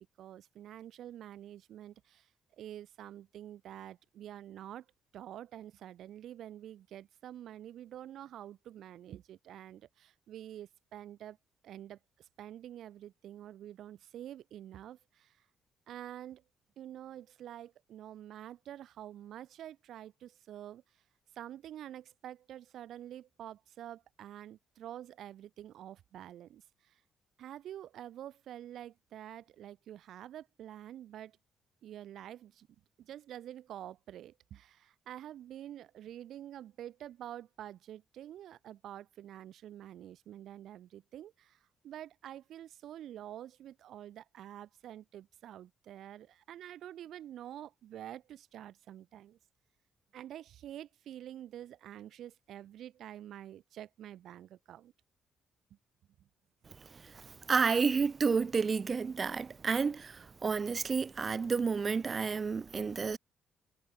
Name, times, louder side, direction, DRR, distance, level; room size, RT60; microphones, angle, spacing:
voice 1, 0.2-2.3 2.6-4.9 5.1-11.4 11.6-15.3 15.9-16.4 16.8-20.8 21.3-26.9 27.4-31.4 31.8-32.7 33.0-41.6 41.8-49.4 50.1-54.9, right 11 dB, 75° right, 4.3 m, -47 dB
voice 2, 57.5-63.2, right 5 dB, 40° right, 0.6 m, -30 dB
cardioid pair, 90°, 0 cm